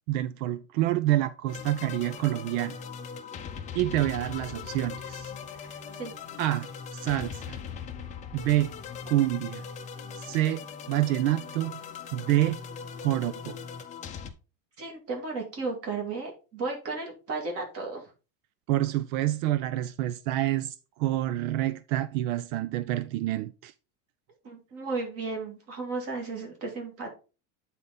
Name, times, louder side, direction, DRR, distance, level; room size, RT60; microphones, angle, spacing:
voice 1, 0.1-2.8 3.7-5.3 6.4-7.6 8.3-8.7 9.1-9.6 10.2-10.6 10.9-11.8 12.1-12.6 13.0-13.6 18.7-23.7, right 14 dB, 85° right, 0.7 m, -27 dB
sound 1, 1.5-14.3, left 6 dB, 20° left, 0.5 m, -40 dB
voice 2, 14.8-18.0 24.4-27.2, right 3 dB, 35° right, 2.2 m, -34 dB
8.9 x 4.1 x 4.0 m
cardioid pair, 170°, 41 cm